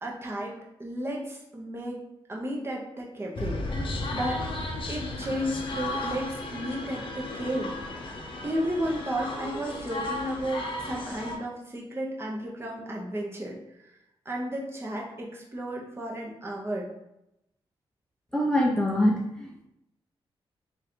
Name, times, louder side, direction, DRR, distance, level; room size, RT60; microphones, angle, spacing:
voice 1, 0.0-2.0 2.3-4.4 4.9-7.7 8.4-13.6 13.8-13.9 14.2-16.9, equal, 25° right, -2 dB, 1.0 m, -33 dB
sound 1, 3.3-11.4, left 2 dB, 60° left, 0.7 m, -34 dB
voice 2, 18.3-19.6, left 1 dB, 5° left, -2 dB, 0.6 m, -24 dB
3.1 x 2.6 x 4.3 m, 0.83 s
cardioid pair, 90°, 10 cm